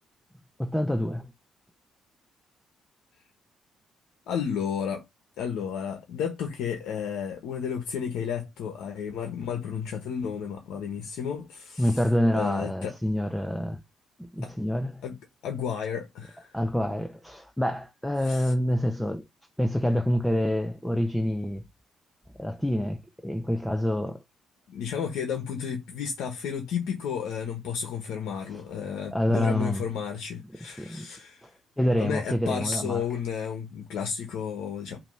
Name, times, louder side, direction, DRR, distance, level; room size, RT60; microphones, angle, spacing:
voice 1, 0.6-1.3 11.8-13.8 14.3-15.0 16.5-19.2 19.6-21.6 22.4-24.2 29.1-29.9 30.8-31.1 31.4-31.5 31.8-33.0, equal, 5° left, 0.9 m, -27 dB
voice 2, 4.3-5.0 5.4-12.0 12.3-12.9 14.4-14.5 15.0-15.2 15.4-16.6 18.2-18.5 24.7-31.4 32.0-35.0, left 7 dB, 85° left, 1.2 m, -32 dB
8.9 x 3.0 x 5.5 m
cardioid pair, 90°, 0 cm